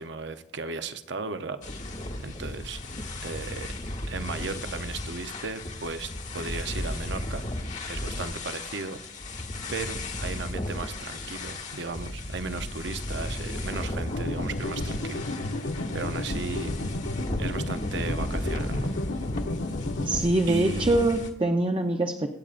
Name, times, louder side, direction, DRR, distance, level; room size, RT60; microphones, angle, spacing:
voice 1, 0.0-1.6 2.2-2.8 3.2-3.7 4.1-7.4 7.8-9.0 9.7-15.3 15.6-16.7 17.4-18.9 20.5-21.1, right 4 dB, 65° right, 10 dB, 0.7 m, -36 dB
sound 1, 1.6-21.3, left 1 dB, 40° left, 1.3 m, -35 dB
sound 2, 14.1-20.2, left 2 dB, 75° left, 1.0 m, -31 dB
voice 2, 20.0-22.3, right 2 dB, 25° right, 4 dB, 0.6 m, -24 dB
24.0 x 8.8 x 2.5 m, 0.87 s
head